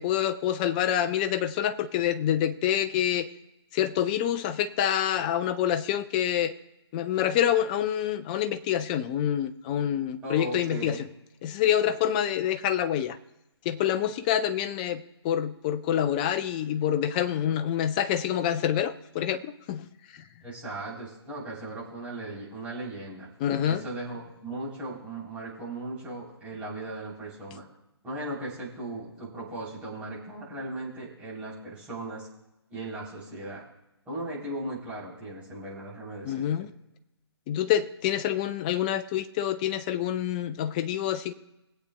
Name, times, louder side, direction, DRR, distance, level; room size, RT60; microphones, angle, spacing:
voice 1, 0.0-3.3 3.7-6.5 6.9-11.0 11.4-13.2 13.7-19.9 23.4-23.8 36.2-36.7 37.5-41.3, left 10 dB, 20° left, 11 dB, 0.4 m, -27 dB
voice 2, 10.2-11.0 20.4-23.3 23.7-27.6 28.0-32.3 32.7-33.6 34.0-36.5, right 2 dB, 10° right, -7 dB, 3.5 m, -37 dB
22.0 x 8.3 x 2.2 m, 0.93 s
figure-of-eight pair, 140°, 14 cm